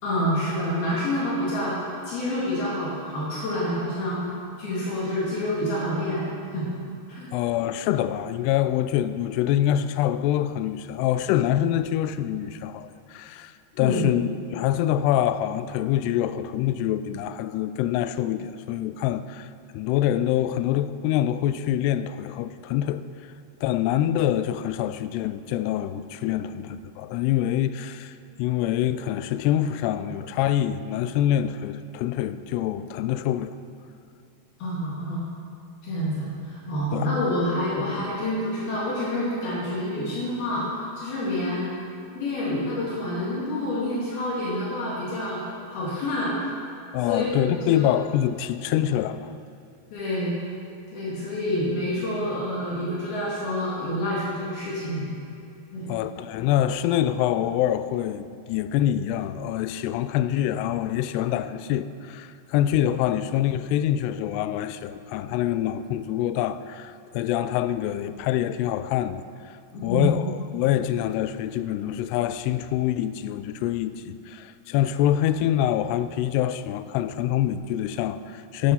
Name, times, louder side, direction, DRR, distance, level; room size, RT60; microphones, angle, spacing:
voice 1, 0.0-4.2 4.6-6.7 7.1-7.2 13.8-14.1 34.6-35.2 35.8-41.7 42.1-45.4 45.7-46.3 47.1-47.4 47.6-47.8 49.9-50.4 50.9-55.1 55.7-55.9 69.7-70.2, left 1 dB, 65° left, 4.1 m, -28 dB
voice 2, 7.3-23.0 23.6-28.1 28.4-33.6 36.9-37.1 46.9-49.3 55.9-69.2 69.8-78.7, left 11 dB, 85° left, 2.6 m, -25 dB
12.0 x 9.9 x 5.8 m
omnidirectional pair, 4.7 m